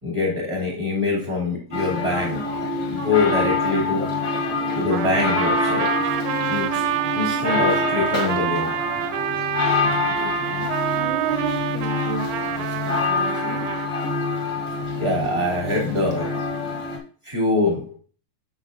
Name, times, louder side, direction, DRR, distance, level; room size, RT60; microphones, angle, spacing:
voice 1, 0.0-2.5 2.9-4.1 4.7-5.9 6.5-8.8 15.0-16.4 17.2-17.9, left 3 dB, 25° right, -4 dB, 2.2 m, -24 dB
sound 1, 1.7-17.0, left 3 dB, 60° left, 1.1 m, -26 dB
Trumpet, 4.9-13.9, right 12 dB, 85° right, 2.8 m, -27 dB
voice 2, 10.0-12.3 12.6-13.6, right 6 dB, 70° right, -1 dB, 1.6 m, -33 dB
7.0 x 6.0 x 3.9 m, 0.41 s
omnidirectional pair, 5.1 m